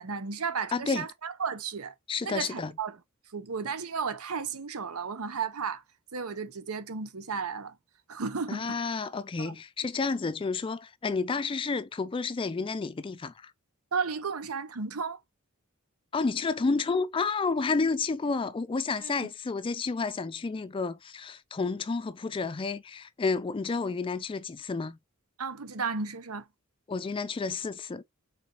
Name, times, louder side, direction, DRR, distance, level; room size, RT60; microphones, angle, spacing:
voice 1, 0.0-1.9 2.2-3.0 3.3-5.8 6.1-7.8 8.1-8.8 9.4-9.6 13.9-15.2 19.0-19.2 25.4-26.4, right 5 dB, 80° right, 0.8 m, -34 dB
voice 2, 0.7-1.1 2.1-2.7 8.5-13.5 16.1-25.0 26.9-28.0, left 4 dB, 25° left, 0.3 m, -30 dB
4.0 x 4.0 x 2.8 m
head